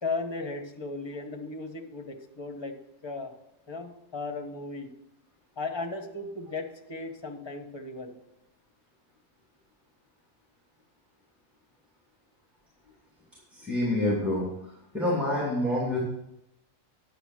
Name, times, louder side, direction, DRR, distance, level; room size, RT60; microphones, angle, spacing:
voice 1, 0.0-2.7 3.0-3.3 3.7-4.9 5.6-8.1, left 3 dB, 20° left, 4 dB, 1.2 m, -36 dB
voice 2, 13.5-14.4 14.9-16.0, left 1 dB, ahead, -5 dB, 2.9 m, -27 dB
10.5 x 7.0 x 6.3 m, 0.85 s
omnidirectional pair, 1.4 m